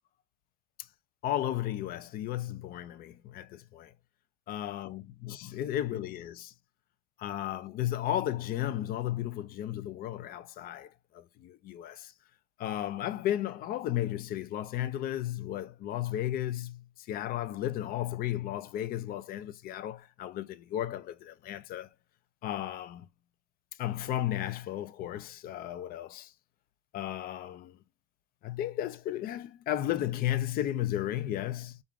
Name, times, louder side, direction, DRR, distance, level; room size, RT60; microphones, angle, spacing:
voice 1, 1.2-3.9 4.5-6.5 7.2-12.1 12.6-21.9 22.4-23.1 23.8-26.3 26.9-27.8 28.4-31.8, left 12 dB, 75° left, 0.4 m, -34 dB
3.6 x 2.5 x 4.6 m
cardioid pair, 155°, 15 cm